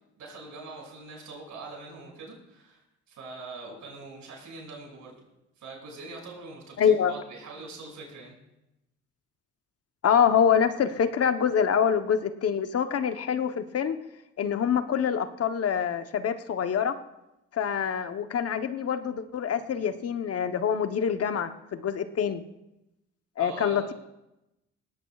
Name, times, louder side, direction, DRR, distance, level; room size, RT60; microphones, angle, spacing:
voice 1, 0.2-5.2 5.6-8.4 23.4-23.9, right 3 dB, 75° right, -1 dB, 6.2 m, -43 dB
voice 2, 6.8-7.1 10.0-14.0 14.4-17.0 17.5-22.4 23.4-23.8, left 7 dB, 50° left, 9 dB, 0.9 m, -25 dB
19.0 x 16.5 x 2.4 m, 0.91 s
cardioid pair, 90°, 30 cm